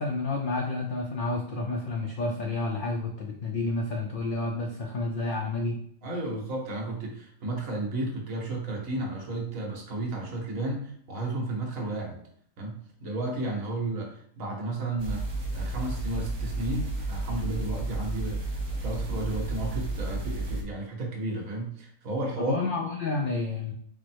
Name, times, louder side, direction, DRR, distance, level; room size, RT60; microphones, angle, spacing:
voice 1, 0.0-5.8 22.4-23.7, left 2 dB, 60° left, 0 dB, 0.5 m, -30 dB
voice 2, 6.0-12.2 12.6-22.6, right 2 dB, 70° right, -1 dB, 1.5 m, -33 dB
sound 1, 15.0-20.6, right 2 dB, 45° right, 1.1 m, -32 dB
4.6 x 2.1 x 4.4 m, 0.62 s
omnidirectional pair, 1.5 m